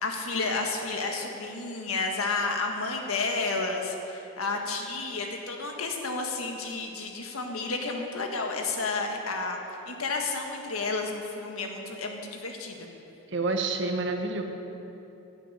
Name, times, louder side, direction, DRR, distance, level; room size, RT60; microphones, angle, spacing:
voice 1, 0.0-9.6 9.9-12.9, left 3 dB, 85° left, 2 dB, 1.6 m, -31 dB
voice 2, 13.3-14.4, right 3 dB, 55° right, 4 dB, 1.2 m, -28 dB
10.5 x 9.0 x 8.6 m, 3.0 s
head